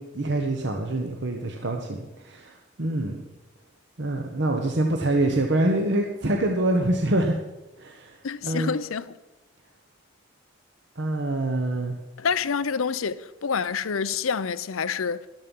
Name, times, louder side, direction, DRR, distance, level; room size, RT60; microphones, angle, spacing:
voice 1, 0.0-3.2 4.0-7.4 7.8-8.2 8.4-8.7 11.0-12.0, right 1 dB, 55° right, 1.1 m, -25 dB
voice 2, 8.2-9.2 12.2-15.3, left 6 dB, 85° left, 0.6 m, -27 dB
13.0 x 11.5 x 5.4 m
head